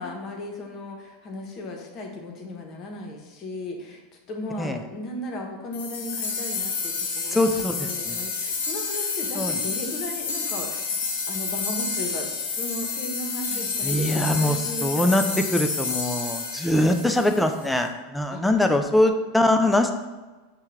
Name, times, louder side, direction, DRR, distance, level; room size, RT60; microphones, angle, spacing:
voice 1, 0.0-4.0 4.3-7.4 7.8-11.0 11.3-15.4 18.3-18.4 18.7-18.9, left 1 dB, 40° left, 1 dB, 0.8 m, -35 dB
sound 1, 5.7-17.7, left 5 dB, 70° left, 0.8 m, -30 dB
voice 2, 7.3-8.2 9.3-9.6 13.5-15.2 15.5-19.9, left 1 dB, 5° left, 6 dB, 0.4 m, -23 dB
5.6 x 2.3 x 3.1 m, 1.3 s
hypercardioid pair, 100°, 0 cm